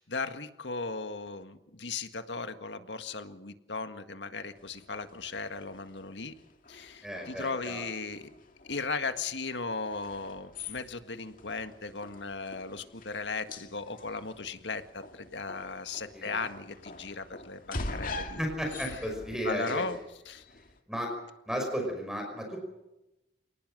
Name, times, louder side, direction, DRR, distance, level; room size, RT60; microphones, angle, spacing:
voice 1, 0.0-6.3 6.7-8.3 8.6-18.5 18.8-19.1 19.4-20.0 20.3-20.4, left 4 dB, 85° left, 8 dB, 1.8 m, -37 dB
sound 1, 4.6-20.8, left 2 dB, 50° left, 2.2 m, -45 dB
voice 2, 7.0-7.9 16.1-16.4 18.4-19.8 20.9-21.1 21.5-22.6, equal, 5° right, 2 dB, 5.6 m, -34 dB
28.5 x 19.0 x 6.5 m, 0.94 s
head